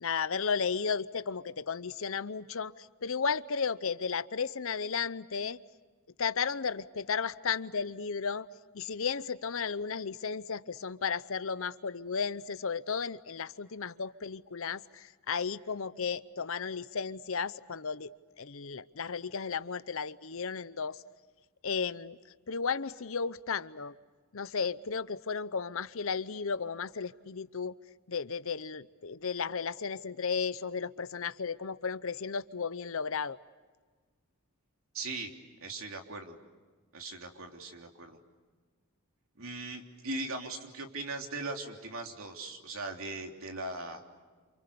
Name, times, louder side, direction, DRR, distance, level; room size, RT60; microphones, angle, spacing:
voice 1, 0.0-5.6 6.2-8.5 8.7-18.1 18.4-21.0 21.6-22.2 22.5-23.9 24.3-27.7 28.1-33.4, left 5 dB, 65° left, 16 dB, 0.8 m, -34 dB
voice 2, 34.9-35.3 35.6-36.4 36.9-38.2 39.4-44.0, right 2 dB, 65° right, 3 dB, 3.4 m, -39 dB
29.0 x 28.0 x 7.0 m, 1.4 s
head